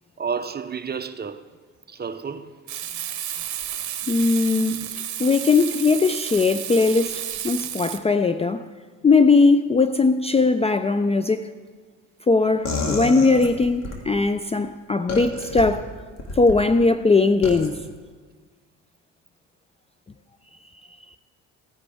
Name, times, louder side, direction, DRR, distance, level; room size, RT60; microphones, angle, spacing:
voice 1, 0.2-1.5 1.9-2.5 4.5-4.9, right 6 dB, 25° right, 0.7 m, -31 dB
Frying (food), 2.7-8.0, right 11 dB, 50° right, 1.0 m, -32 dB
voice 2, 4.1-4.8 5.2-8.6 9.0-11.5 12.3-15.9 16.3-17.8, left 3 dB, 15° left, 0.4 m, -19 dB
sound 1, 12.6-14.0 15.1-15.6 16.2-16.6 17.4-17.7, left 3 dB, 45° left, 2.0 m, -29 dB
16.5 x 9.7 x 3.5 m
supercardioid pair, 70°, 37 cm